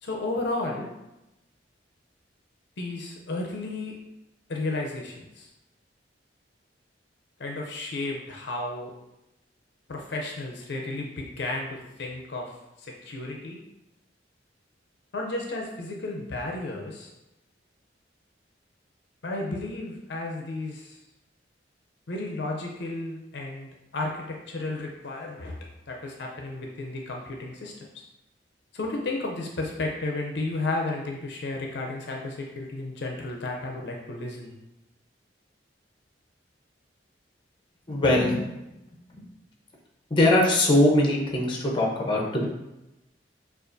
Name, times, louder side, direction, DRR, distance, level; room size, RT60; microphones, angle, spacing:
voice 1, 0.0-0.9 2.8-4.0 4.5-5.5 7.4-8.9 9.9-12.5 12.8-13.6 15.1-17.1 19.2-21.0 22.1-28.0 28.7-34.5, left 2 dB, 65° left, 0 dB, 0.6 m, -33 dB
voice 2, 37.9-38.4 40.1-42.5, left 1 dB, 25° left, -1 dB, 0.7 m, -21 dB
6.5 x 2.5 x 2.6 m, 0.95 s
head